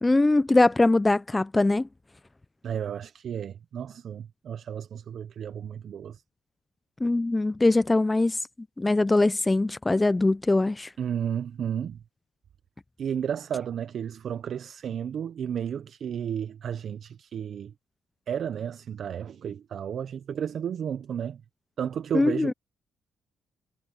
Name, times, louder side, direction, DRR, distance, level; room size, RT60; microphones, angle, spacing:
voice 1, 0.0-1.9 7.0-8.4 8.8-10.9 22.1-22.5, left 2 dB, 15° left, 0.4 m, -22 dB
voice 2, 2.6-6.2 11.0-12.0 13.0-17.7 18.3-21.4 21.8-22.5, right 8 dB, 60° right, 0.6 m, -32 dB
cardioid pair, 90°, 0 cm